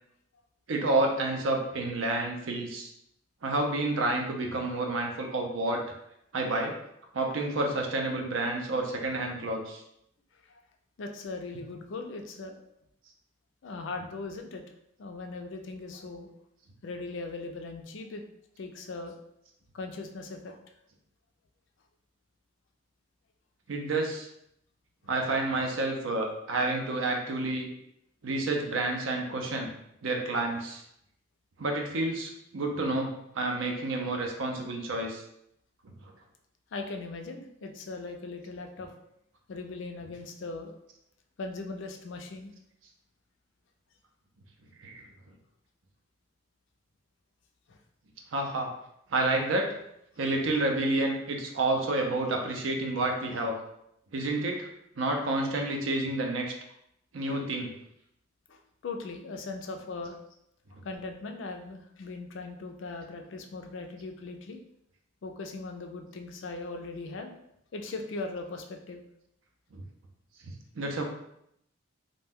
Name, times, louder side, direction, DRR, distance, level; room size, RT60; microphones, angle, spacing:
voice 1, 0.7-2.9 3.4-5.8 6.3-6.7 7.1-9.8 14.0-14.1 23.7-24.3 25.1-27.7 28.2-29.7 30.0-30.8 31.6-35.2 40.0-40.1 44.8-45.1 48.3-48.7 49.1-49.7 50.2-53.6 54.1-54.7 55.0-56.5 57.1-57.7 69.7-69.8 70.4-71.0, right 2 dB, 80° right, 2 dB, 0.5 m, -29 dB
voice 2, 11.0-12.6 13.6-14.6 15.0-16.3 16.8-18.2 18.6-19.1 19.7-20.6 36.7-38.9 39.5-40.7 41.4-42.5 47.7-47.8 58.5-60.2 60.8-64.6 65.2-67.4 67.7-69.0, left 3 dB, 65° left, 4 dB, 0.4 m, -39 dB
2.6 x 2.1 x 3.5 m, 0.77 s
head